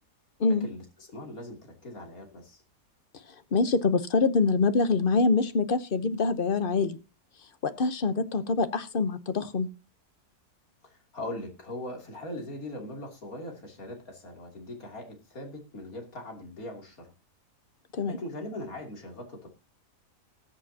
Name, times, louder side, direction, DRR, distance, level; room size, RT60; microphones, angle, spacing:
voice 1, 0.5-2.6 10.8-17.1 18.1-19.5, left 1 dB, 60° left, 1 dB, 3.4 m, -40 dB
voice 2, 3.5-7.0 7.6-9.7 17.9-18.2, left 4 dB, 40° left, 11 dB, 0.9 m, -25 dB
20.0 x 7.5 x 2.8 m, 0.29 s
omnidirectional pair, 1.7 m